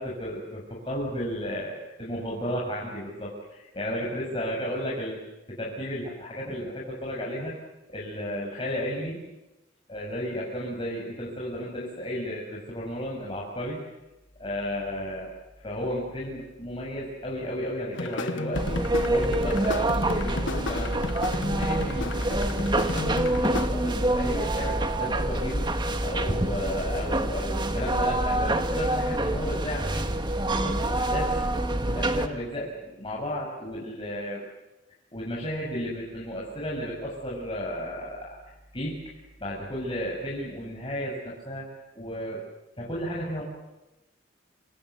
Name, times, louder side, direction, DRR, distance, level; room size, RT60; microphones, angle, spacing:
voice 1, 0.0-5.2 5.5-7.5 7.9-9.2 9.9-13.8 14.4-15.3 15.6-21.0 21.5-25.7 26.0-30.1 30.5-31.3 31.8-34.5 35.1-38.9 39.4-41.7 41.9-42.5 42.8-43.4, equal, 30° left, -4 dB, 6.8 m, -33 dB
sound 1, 17.9-23.7, left 2 dB, 85° left, 1.4 m, -34 dB
sound 2, 18.5-32.3, right 1 dB, 25° right, 1.8 m, -26 dB
28.5 x 25.0 x 8.4 m, 1.0 s
head